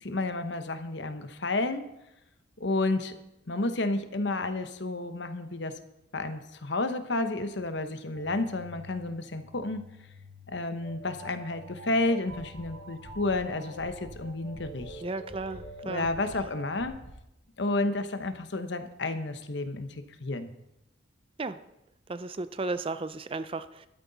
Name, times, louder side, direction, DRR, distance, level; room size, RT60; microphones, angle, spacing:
voice 1, 0.0-1.8 2.6-3.1 3.5-5.8 6.1-9.8 10.5-15.0 15.8-17.0 17.6-20.5, left 2 dB, 60° left, 9 dB, 1.0 m, -31 dB
sound 1, 8.1-16.9, right 1 dB, 80° right, 6.3 m, -46 dB
sound 2, 12.3-12.6 13.0-13.4 13.8-14.1 14.5-14.9 15.3-15.6 16.0-16.4 16.8-17.1, equal, 35° left, 3.5 m, -48 dB
voice 2, 15.0-16.1 21.4-21.6 22.1-23.9, right 3 dB, 30° right, 12 dB, 0.4 m, -34 dB
13.5 x 12.5 x 4.0 m, 0.88 s
head